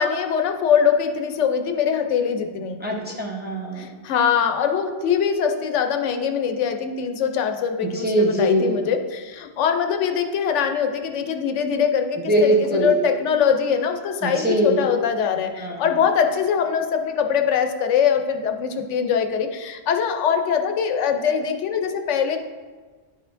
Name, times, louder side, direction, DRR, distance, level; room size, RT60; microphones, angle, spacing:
voice 1, 0.0-2.8 3.8-12.2 12.8-22.4, left 7 dB, 85° left, 6 dB, 0.9 m, -22 dB
voice 2, 2.8-4.0 7.9-8.8 12.2-12.9 14.2-14.8 15.6-15.9, right 1 dB, 10° right, -2 dB, 0.6 m, -22 dB
10.5 x 4.3 x 2.5 m, 1.4 s
omnidirectional pair, 1.2 m